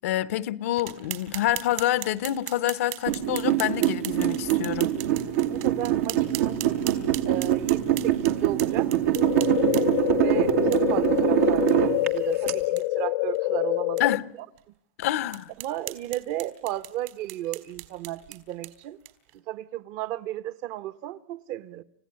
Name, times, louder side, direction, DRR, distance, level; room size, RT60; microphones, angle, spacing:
voice 1, 0.0-4.9 14.0-14.3 15.0-15.5, left 13 dB, 85° left, 1.0 m, -27 dB
sound 1, 0.8-10.1 10.7-10.8 11.2-11.3 11.7-11.8 12.1-12.2 12.6-12.8 13.3-13.4 14.0-14.1 14.6-14.7 15.3-19.3, right 18 dB, 65° right, 3.4 m, -39 dB
sound 2, 3.1-12.5, right 11 dB, 85° right, 2.0 m, -24 dB
voice 2, 5.4-6.6 7.2-8.9 9.6-14.0 15.6-19.0 19.5-21.8, right 13 dB, 50° right, 1.0 m, -34 dB
sound 3, 9.2-14.2, left 18 dB, 70° left, 0.9 m, -26 dB
29.5 x 16.0 x 9.8 m
supercardioid pair, 150°, 8 cm